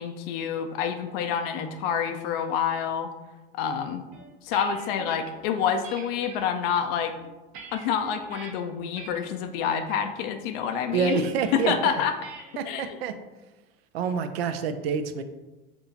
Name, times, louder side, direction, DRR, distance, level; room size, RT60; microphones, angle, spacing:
voice 1, 0.0-3.1 3.5-4.0 4.4-7.1 7.7-11.3 11.5-12.1 12.6-13.0, left 7 dB, 70° left, 6 dB, 0.5 m, -27 dB
sound 1, 4.1-5.3 5.8-6.4 7.0-8.5 9.0-9.4 9.7-10.1 11.0-11.6 12.2-12.6, right 5 dB, 60° right, 1.0 m, -44 dB
voice 2, 10.9-11.7 12.6-13.1 13.9-15.2, right 6 dB, 85° right, 9 dB, 0.5 m, -27 dB
5.9 x 2.8 x 2.8 m, 1.1 s
hypercardioid pair, 85°, 30 cm